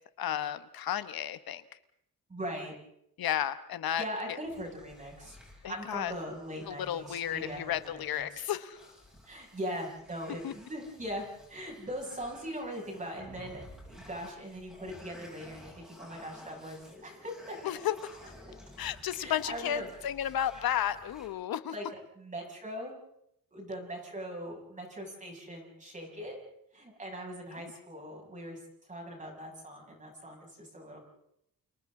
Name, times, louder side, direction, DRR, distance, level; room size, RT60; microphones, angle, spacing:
voice 1, 0.2-1.6 3.2-4.0 5.6-6.1 6.7-8.8 10.4-10.5 17.6-17.9 18.8-21.7, left 10 dB, 85° left, 12 dB, 1.2 m, -33 dB
voice 2, 2.3-2.7 4.0-5.4 5.7-8.4 9.2-17.6 19.2-19.9 20.5-20.7 21.7-22.9 23.5-26.4 26.7-31.0, equal, 20° right, 0 dB, 6.8 m, -41 dB
sound 1, 4.4-21.3, left 1 dB, ahead, 7.5 m, -54 dB
29.5 x 29.0 x 3.8 m, 0.77 s
wide cardioid pair, 175°, 35 cm